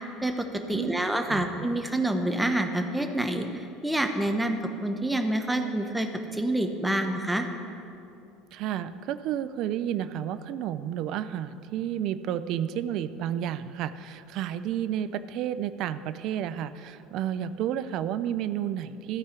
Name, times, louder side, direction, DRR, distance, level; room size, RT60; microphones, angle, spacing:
voice 1, 0.2-7.5, right 1 dB, 10° right, 5 dB, 1.1 m, -27 dB
voice 2, 8.5-19.2, right 10 dB, 60° right, 13 dB, 0.4 m, -31 dB
14.0 x 4.7 x 8.2 m, 2.7 s
hypercardioid pair, 75°, 0 cm